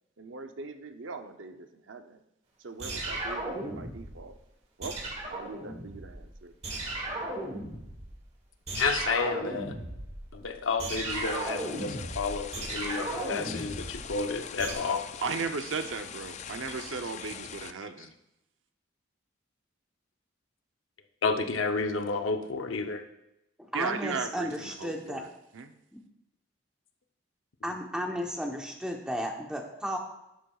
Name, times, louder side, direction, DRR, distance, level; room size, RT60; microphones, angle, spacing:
voice 1, 0.2-2.2 2.6-4.4 4.8-4.9 5.3-6.5 15.2-18.1 23.7-25.7, right 5 dB, 75° right, 7 dB, 0.6 m, -37 dB
sound 1, 2.8-4.3 4.8-6.3 6.6-8.2 8.7-14.7, right 1 dB, 35° right, 1.2 m, -36 dB
voice 2, 8.7-9.8 10.3-15.0 21.2-23.0, left 4 dB, 85° left, 6 dB, 0.7 m, -31 dB
sound 2, 11.1-17.7, left 8 dB, 35° left, 0.3 m, -43 dB
voice 3, 23.6-25.2 27.6-30.0, equal, 5° right, 1 dB, 0.9 m, -34 dB
11.5 x 7.5 x 2.4 m, 0.87 s
head